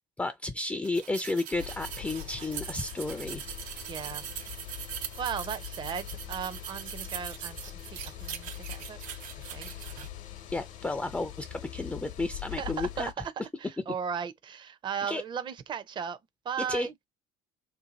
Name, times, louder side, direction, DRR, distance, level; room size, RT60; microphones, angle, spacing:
voice 1, 0.0-3.4 9.7-9.8 10.5-13.1 15.1-15.2 16.7-17.1, left 2 dB, 10° left, 0.4 m, -32 dB
sound 1, 0.8-10.1, right 10 dB, 80° right, 0.6 m, -41 dB
sound 2, 1.5-13.1, left 12 dB, 70° left, 0.8 m, -43 dB
voice 2, 3.9-4.2 5.2-7.6 7.9-9.0 9.4-9.7 12.5-13.3 13.6-16.2 16.4-16.9, right 7 dB, 35° right, 0.6 m, -36 dB
2.7 x 2.5 x 3.9 m
cardioid pair, 125°, 13 cm